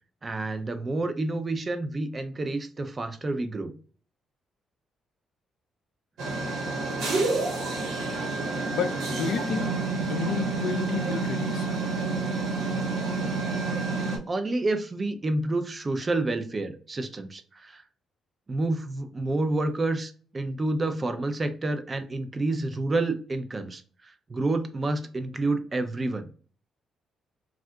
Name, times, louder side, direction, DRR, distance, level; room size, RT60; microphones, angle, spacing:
voice 1, 0.2-3.7 13.9-17.8 18.5-26.3, right 2 dB, 30° right, 0.5 m, -29 dB
sound 1, 6.2-14.2, right 3 dB, 90° right, 1.1 m, -29 dB
voice 2, 8.7-9.7 10.1-11.7, left 6 dB, 75° left, 0.4 m, -31 dB
2.6 x 2.4 x 3.4 m
cardioid pair, 90°, 0 cm